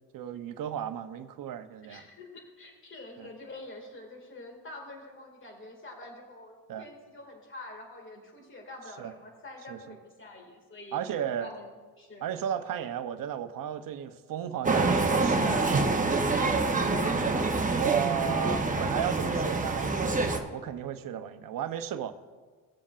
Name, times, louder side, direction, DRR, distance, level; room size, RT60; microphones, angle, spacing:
voice 1, 0.1-2.1 3.2-3.3 6.7-6.9 9.0-9.1 9.7-9.8 10.9-11.5 12.2-16.0 17.8-22.1, right 9 dB, 60° right, 9 dB, 0.8 m, -34 dB
voice 2, 1.8-11.0 11.4-12.3 16.6-17.3, left 2 dB, 30° left, 2 dB, 2.1 m, -46 dB
sound 1, 14.6-20.4, right 3 dB, 20° right, 0.9 m, -26 dB
18.0 x 7.2 x 2.5 m, 1.4 s
cardioid pair, 90°, 37 cm